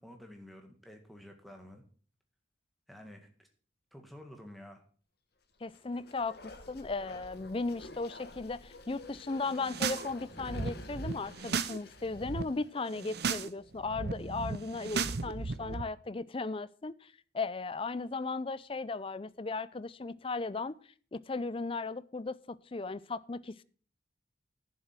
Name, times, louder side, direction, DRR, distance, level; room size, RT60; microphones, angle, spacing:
voice 1, 0.0-1.8 2.9-3.5 3.9-4.8, left 1 dB, ahead, 1.8 m, -51 dB
voice 2, 5.6-6.4 6.7-20.8 21.1-23.6, left 3 dB, 30° left, 0.5 m, -36 dB
Bark, 5.7-13.3 13.6-13.7, left 2 dB, 55° left, 1.5 m, -49 dB
sound 1, 9.5-10.1 10.3-11.8 12.0-12.4 12.9-13.5 13.8-15.8, right 5 dB, 60° right, 0.7 m, -35 dB
10.5 x 7.4 x 6.0 m
head